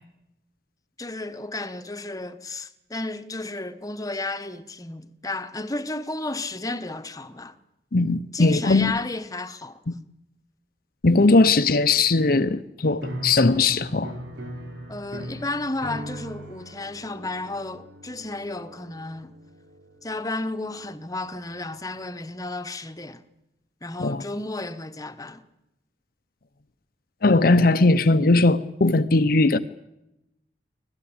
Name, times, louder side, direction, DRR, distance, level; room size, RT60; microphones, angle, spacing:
voice 1, 1.0-7.6 8.3-9.8 14.9-19.3 20.0-23.2 23.8-25.4, left 2 dB, 20° left, 1.1 m, -33 dB
voice 2, 7.9-8.9 9.9-10.0 11.0-14.1 24.0-24.2 27.2-29.6, left 3 dB, 55° left, 0.8 m, -19 dB
sound 1, 13.0-21.3, right 1 dB, 90° right, 5.4 m, -40 dB
25.0 x 17.5 x 8.8 m
head